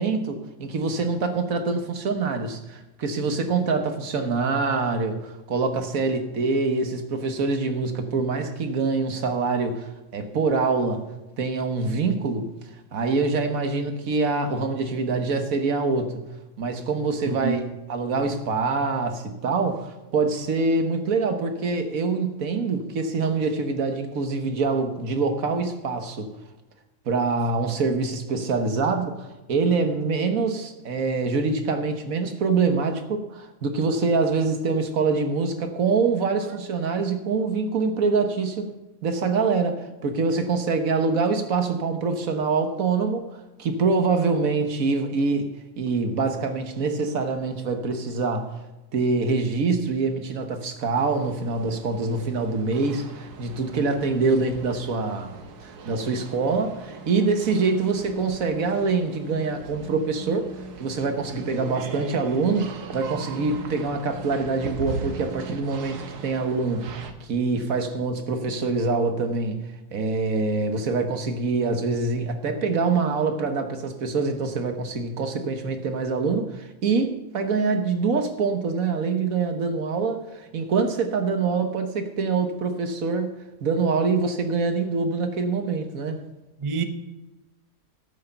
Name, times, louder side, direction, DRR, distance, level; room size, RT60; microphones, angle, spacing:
voice 1, 0.0-11.0 11.4-12.5 12.9-16.2 16.6-26.3 27.1-38.7 39.0-48.6 48.9-60.5 60.8-69.6 69.9-83.3 83.6-86.2, right 4 dB, 65° right, 1.5 m, -25 dB
voice 2, 17.3-17.6 86.6-86.8, right 4 dB, 30° right, 0.6 m, -27 dB
sound 1, 50.9-67.1, right 4 dB, 90° right, 1.6 m, -39 dB
12.5 x 6.5 x 6.7 m
omnidirectional pair, 1.6 m